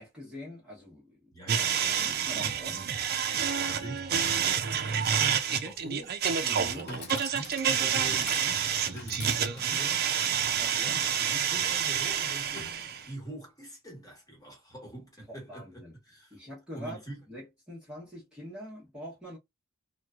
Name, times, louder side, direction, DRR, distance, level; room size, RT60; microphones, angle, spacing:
voice 1, 0.0-1.3 2.0-2.8 6.4-6.9 9.6-9.9 10.6-11.1 15.3-15.9 16.3-17.0 17.3-19.4, equal, 5° right, 1.0 m, -44 dB
voice 2, 1.3-2.9 3.6-6.4 6.9-10.1 10.7-12.7 13.1-16.4 16.7-17.2, right 1 dB, 15° left, 1.3 m, -44 dB
sound 1, 1.5-13.1, right 8 dB, 50° right, 0.5 m, -28 dB
Chatter / Coin (dropping), 6.3-13.3, left 4 dB, 55° left, 0.9 m, -48 dB
3.0 x 2.2 x 2.4 m
head